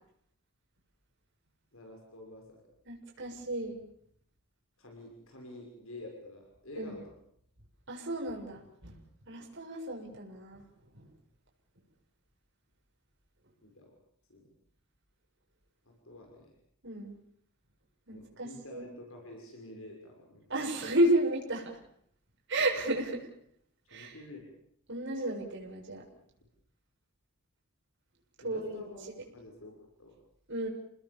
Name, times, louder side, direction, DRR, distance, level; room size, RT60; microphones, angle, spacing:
voice 1, 1.7-2.7 3.2-3.3 4.8-7.0 9.3-9.5 13.6-13.9 14.3-14.5 15.8-16.5 18.1-20.5 23.9-24.5 28.4-30.2, left 1 dB, 60° left, 1 dB, 6.5 m, -49 dB
voice 2, 2.9-3.8 6.8-7.0 7.9-9.0 9.3-10.6 10.9-11.1 16.8-17.2 18.1-18.9 20.5-21.8 22.5-23.3 23.9-24.2 24.9-26.0 28.4-28.8 30.5-30.7, right 1 dB, 55° right, -1 dB, 7.3 m, -32 dB
29.5 x 20.5 x 7.2 m, 0.70 s
head